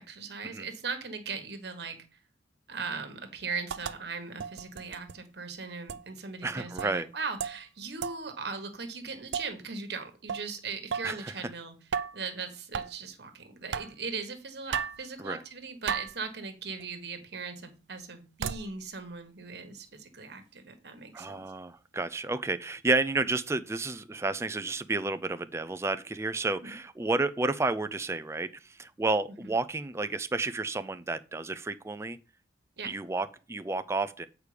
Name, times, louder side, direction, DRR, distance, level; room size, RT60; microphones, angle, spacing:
voice 1, 0.0-2.0 2.7-11.7 12.1-21.3 26.6-26.7 29.4-29.5 32.8-32.9, right 4 dB, 60° right, 1.4 m, -39 dB
sound 1, 3.7-4.0 4.4-5.2 5.9-6.0 6.8-7.0 7.4-7.6 8.0-8.2 9.3-9.5 10.3-10.5 10.9-11.2 11.9-12.3 12.7-12.9 13.7-13.9 14.7-15.0 15.9-16.2 16.8-16.9 18.4-18.7, right 7 dB, 85° right, 0.5 m, -34 dB
voice 2, 6.4-7.1 11.0-11.3 15.2-15.4 21.1-32.2 32.9-34.3, right 3 dB, 15° right, 0.3 m, -31 dB
8.3 x 4.8 x 5.0 m
head